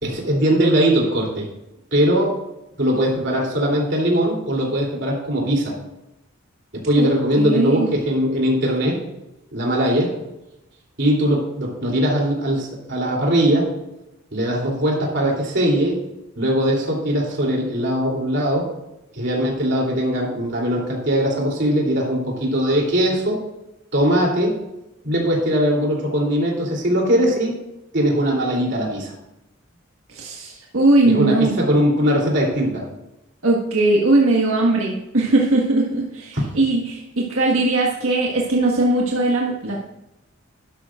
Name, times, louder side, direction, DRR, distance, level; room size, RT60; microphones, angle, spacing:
voice 1, 0.0-1.5 1.9-2.3 2.8-5.7 6.7-9.0 9.5-10.1 11.0-13.6 14.3-16.0 16.4-18.7 19.1-23.4 23.9-24.6 25.0-27.5 27.9-29.1 31.0-32.8 36.3-36.4, equal, 55° right, -2 dB, 3.2 m, -20 dB
voice 2, 7.4-7.9 30.1-31.6 33.4-39.8, right 2 dB, 85° right, -2 dB, 1.6 m, -19 dB
12.5 x 11.5 x 2.5 m, 0.91 s
head